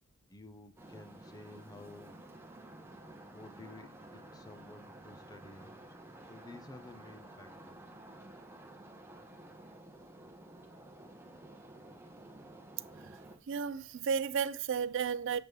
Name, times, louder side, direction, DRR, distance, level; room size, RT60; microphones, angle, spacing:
voice 1, 0.3-2.2 3.3-7.9, left 2 dB, 20° left, 0.6 m, -53 dB
sound 1, 0.8-13.4, right 1 dB, 10° right, 0.9 m, -52 dB
voice 2, 13.5-15.4, right 6 dB, 60° right, 0.4 m, -33 dB
6.7 x 4.0 x 4.6 m
head